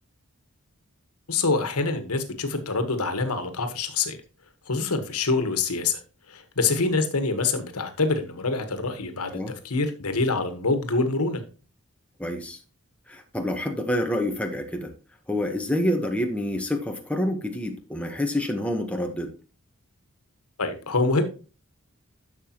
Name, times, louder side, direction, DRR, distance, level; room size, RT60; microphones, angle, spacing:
voice 1, 1.3-4.2 4.7-6.0 6.3-9.4 9.6-11.4 20.6-21.2, left 3 dB, 90° left, 8 dB, 1.4 m, -25 dB
voice 2, 12.2-12.6 13.1-14.9 15.3-19.3, left 1 dB, 5° left, 3 dB, 1.0 m, -27 dB
11.0 x 6.8 x 3.0 m, 0.35 s
head